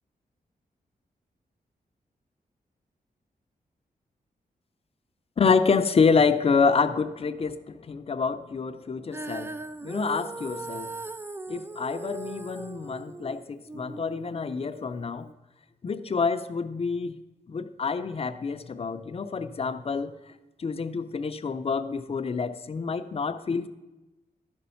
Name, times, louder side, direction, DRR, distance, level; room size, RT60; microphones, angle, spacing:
voice 1, 5.4-9.5 9.8-11.0 11.5-15.3 15.8-17.2 17.5-20.1 20.6-23.7, left 5 dB, 40° left, 11 dB, 0.5 m, -27 dB
Female singing, 9.1-15.3, right 3 dB, 15° right, 0.4 m, -39 dB
12.0 x 5.2 x 5.6 m, 1.0 s
wide cardioid pair, 125°, 15 cm